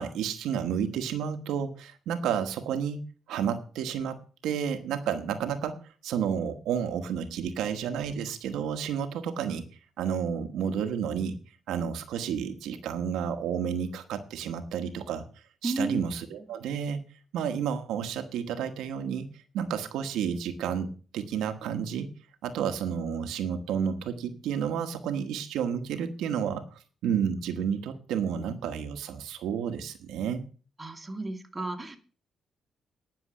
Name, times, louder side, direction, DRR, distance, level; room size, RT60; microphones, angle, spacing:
voice 1, 0.0-3.0 3.3-4.2 4.4-5.8 6.0-9.6 10.0-11.4 11.7-15.2 15.6-17.0 17.3-22.1 22.4-30.4, right 8 dB, 85° right, 7 dB, 1.2 m, -31 dB
voice 2, 15.6-16.1 30.8-32.0, right 2 dB, 20° right, 4 dB, 2.2 m, -32 dB
10.0 x 6.8 x 7.6 m, 0.38 s
cardioid pair, 90°, 0 cm